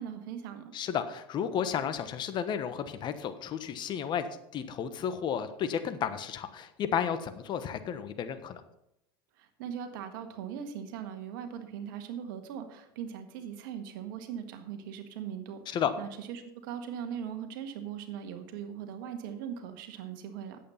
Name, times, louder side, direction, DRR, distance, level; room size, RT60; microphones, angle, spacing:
voice 1, 0.0-0.7 9.4-20.6, right 8 dB, 70° right, 6 dB, 1.7 m, -40 dB
voice 2, 0.7-4.3 4.5-8.6 15.7-15.9, left 8 dB, 40° left, 11 dB, 1.2 m, -32 dB
9.3 x 8.3 x 5.8 m, 0.83 s
hypercardioid pair, 90°, 11 cm